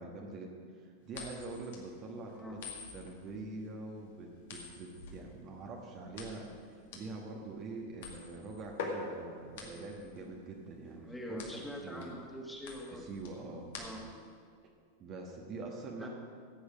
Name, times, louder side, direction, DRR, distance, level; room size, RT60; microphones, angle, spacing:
voice 1, 0.0-2.6 2.9-12.1 12.9-14.0 15.0-16.1, right 3 dB, 35° right, 0 dB, 1.4 m, -45 dB
sound 1, 1.1-14.3, left 4 dB, 55° left, 2.0 m, -46 dB
voice 2, 2.3-2.6 11.0-13.0 13.8-14.0 16.0-16.1, equal, 5° left, -1 dB, 2.1 m, -44 dB
15.0 x 8.6 x 5.1 m, 2.1 s
figure-of-eight pair, 90°, 0 cm